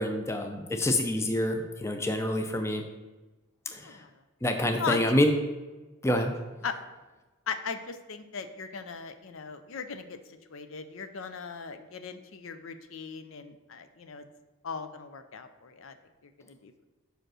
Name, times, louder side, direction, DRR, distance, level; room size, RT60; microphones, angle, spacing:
voice 1, 0.0-2.8 3.7-3.9 4.4-5.3 6.0-6.3, left 1 dB, 15° left, 5 dB, 0.5 m, -27 dB
voice 2, 4.8-5.2 6.6-6.8 7.5-10.2 10.5-14.2 14.6-15.9 16.4-16.8, left 5 dB, 70° left, 9 dB, 0.5 m, -38 dB
5.1 x 5.0 x 6.2 m, 1.2 s
head